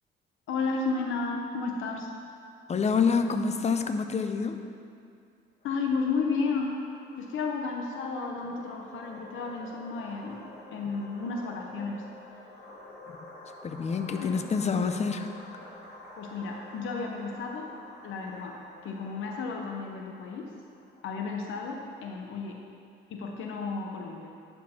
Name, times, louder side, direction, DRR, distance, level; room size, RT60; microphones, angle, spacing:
voice 1, 0.5-2.1 5.6-6.8 7.2-12.0 14.2-14.6 16.2-17.7 18.0-20.5 21.0-22.6 23.1-24.3, left 4 dB, 80° left, 1 dB, 0.8 m, -33 dB
voice 2, 2.7-4.6 13.6-15.3, left 5 dB, 35° left, 8 dB, 0.6 m, -27 dB
sound 1, 5.6-21.3, left 2 dB, 55° left, 2.0 m, -49 dB
11.5 x 4.6 x 4.3 m, 2.3 s
cardioid pair, 90°, 20 cm